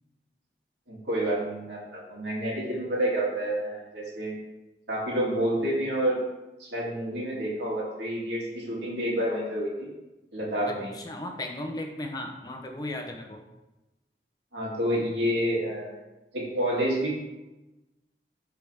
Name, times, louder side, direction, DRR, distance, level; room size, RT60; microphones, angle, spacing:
voice 1, 0.9-4.4 4.9-6.2 6.6-9.9 10.3-10.9 14.5-16.0 16.3-17.1, right 1 dB, 80° right, -4 dB, 2.8 m, -29 dB
voice 2, 10.7-13.4, left 1 dB, 20° left, 3 dB, 0.8 m, -36 dB
13.5 x 4.7 x 3.5 m, 1.0 s
head